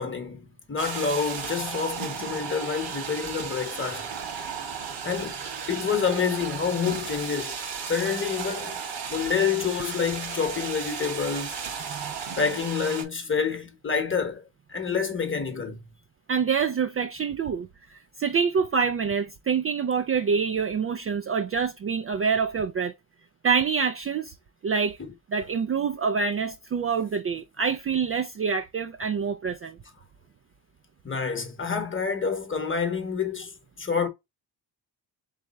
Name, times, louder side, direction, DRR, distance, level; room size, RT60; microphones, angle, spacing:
voice 1, 0.0-4.1 5.0-5.4 5.7-7.6 7.9-8.8 9.1-11.5 12.4-14.4 14.7-15.8 25.0-25.1 31.0-34.1, left 6 dB, 25° left, 1.1 m, -28 dB
sound 1, 0.8-13.0, right 6 dB, 70° right, 1.7 m, -35 dB
voice 2, 16.3-22.9 23.4-24.3 24.6-25.0 25.3-29.8, right 6 dB, 35° right, 0.4 m, -26 dB
3.5 x 3.3 x 4.0 m
cardioid pair, 90°, 44 cm